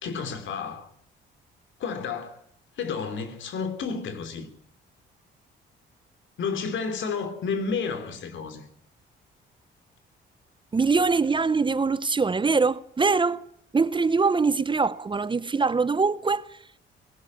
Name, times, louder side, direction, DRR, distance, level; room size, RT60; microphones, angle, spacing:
voice 1, 0.0-0.9 1.8-2.4 2.8-4.5 6.4-8.7, left 5 dB, 75° left, 3.4 m, -31 dB
voice 2, 10.7-13.4 13.7-16.7, right 4 dB, 25° right, 0.7 m, -23 dB
21.0 x 13.0 x 9.7 m
cardioid pair, 90°, 20 cm